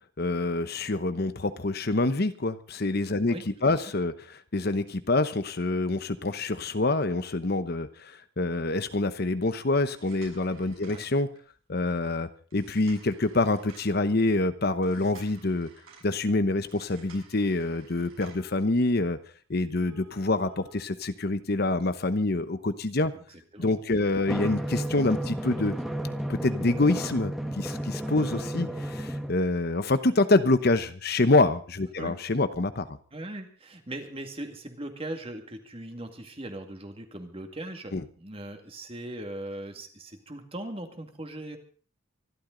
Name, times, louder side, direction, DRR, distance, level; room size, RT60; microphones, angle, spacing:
voice 1, 0.2-3.4 3.6-11.3 11.7-15.7 16.0-19.2 19.5-23.1 23.6-25.7 26.3-33.0 37.9-38.0, left 2 dB, 50° left, 11 dB, 0.9 m, -26 dB
sound 1, 9.8-11.5 12.5-14.0 14.8-16.1 16.6-18.6 19.8-21.6 22.1-22.2 22.7-22.8 23.3-23.4 23.7-23.8 24.2-24.3 24.6-24.7 25.1-26.0 27.1-27.2, right 5 dB, 85° right, 6.8 m, -54 dB
voice 2, 23.3-24.5 32.0-32.2 33.1-41.6, right 1 dB, 30° right, 5 dB, 2.1 m, -40 dB
Drum, 24.3-29.3, right 1 dB, ahead, 1.5 m, -32 dB
25.0 x 12.5 x 3.9 m, 0.41 s
head